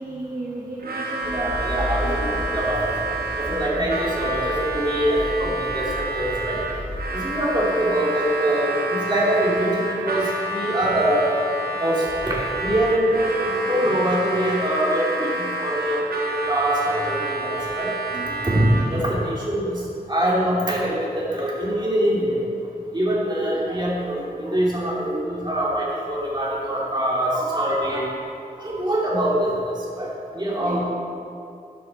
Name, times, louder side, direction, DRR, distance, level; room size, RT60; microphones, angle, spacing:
voice 1, 0.0-2.3 18.1-18.4 30.6-30.8, right 2 dB, 55° right, -6 dB, 1.6 m, -35 dB
Harmonica, 0.8-19.1, right 2 dB, 75° right, 1.3 m, -29 dB
sound 1, 1.2-7.0, equal, 10° right, 2.0 m, -33 dB
voice 2, 1.3-2.9 3.4-6.6 7.1-11.4 11.8-12.3 12.6-16.0 16.5-17.9 18.4-19.8 20.1-22.4 22.9-28.1 28.6-30.1 30.3-30.8, right 1 dB, 30° right, -6 dB, 2.8 m, -23 dB
11.0 x 8.7 x 4.2 m, 2.6 s
wide cardioid pair, 85°, 16 cm